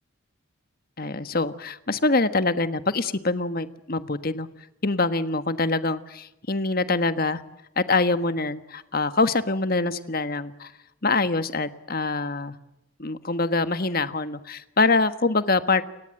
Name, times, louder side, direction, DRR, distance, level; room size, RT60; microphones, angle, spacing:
voice 1, 1.0-4.5 4.8-7.4 7.8-10.7 11.0-12.6 13.0-15.8, left 3 dB, 45° left, 11 dB, 1.4 m, -24 dB
30.0 x 22.5 x 7.8 m, 0.90 s
head